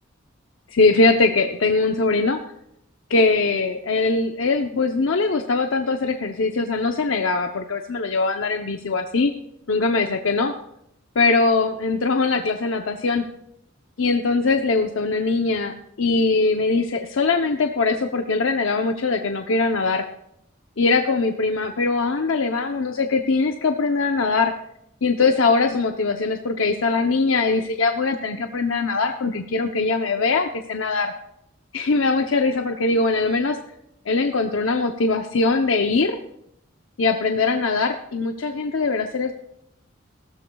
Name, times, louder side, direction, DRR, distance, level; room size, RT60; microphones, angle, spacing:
voice 1, 0.7-2.4 3.1-9.3 9.7-10.5 11.2-13.2 14.0-20.0 20.8-24.5 25.0-31.1 31.7-33.6 34.1-36.2 37.0-39.3, left 3 dB, 85° left, 5 dB, 0.7 m, -21 dB
18.0 x 13.0 x 2.3 m, 0.78 s
head